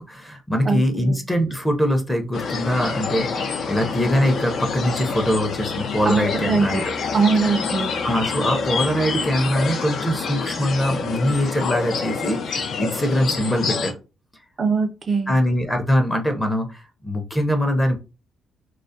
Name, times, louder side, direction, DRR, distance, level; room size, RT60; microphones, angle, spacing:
voice 1, 0.0-6.9 8.0-13.9 15.3-18.0, equal, 15° left, 4 dB, 0.6 m, -22 dB
voice 2, 0.7-1.2 6.0-6.8 7.1-7.9 14.6-15.4, right 4 dB, 40° right, 7 dB, 0.4 m, -22 dB
sound 1, 2.3-13.9, left 5 dB, 60° left, 0.4 m, -27 dB
2.3 x 2.0 x 2.6 m, 0.30 s
cardioid pair, 90°, 0 cm